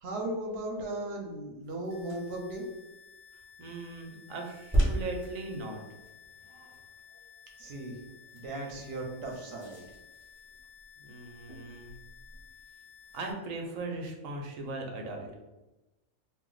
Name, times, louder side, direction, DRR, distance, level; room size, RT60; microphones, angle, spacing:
voice 1, 0.0-2.6 7.6-8.0 8.3-9.8, right 1 dB, 60° right, 0 dB, 0.8 m, -37 dB
sound 1, 1.6-13.4, right 1 dB, 15° right, 0.5 m, -38 dB
sound 2, 1.9-13.3, left 6 dB, 65° left, 0.7 m, -55 dB
voice 2, 3.6-5.8 6.4-6.8 7.1-7.2 11.0-11.9 13.1-15.3, right 2 dB, 85° right, 2 dB, 1.0 m, -39 dB
2.5 x 2.1 x 3.8 m, 1.1 s
omnidirectional pair, 1.4 m